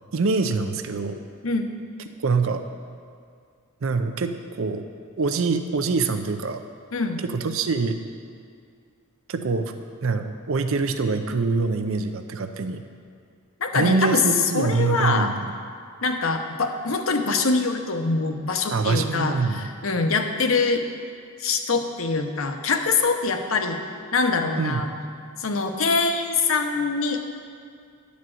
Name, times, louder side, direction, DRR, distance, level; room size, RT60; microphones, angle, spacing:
voice 1, 0.1-1.2 2.2-2.6 3.8-4.8 5.2-6.6 7.2-8.0 9.3-9.7 10.0-12.8 13.7-15.5 18.7-19.7 24.6-24.8, right 4 dB, 65° right, 8 dB, 0.5 m, -24 dB
voice 2, 6.9-7.2 13.6-14.2 14.5-15.3 16.0-20.8 21.4-23.8 24.1-24.9 25.4-27.2, left 4 dB, 70° left, 5 dB, 0.8 m, -24 dB
10.5 x 4.1 x 7.6 m, 2.2 s
head